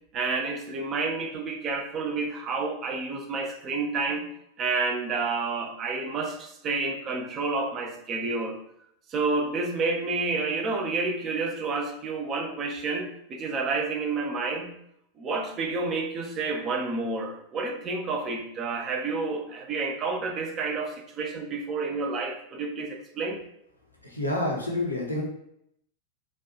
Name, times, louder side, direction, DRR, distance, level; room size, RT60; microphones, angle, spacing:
voice 1, 0.1-4.3 4.6-8.6 9.1-14.7 15.2-23.4, right 3 dB, 30° right, 3 dB, 0.6 m, -29 dB
voice 2, 24.1-25.2, left 1 dB, 85° left, -1 dB, 0.9 m, -28 dB
4.2 x 2.4 x 2.9 m, 0.74 s
figure-of-eight pair, 90°, 0 cm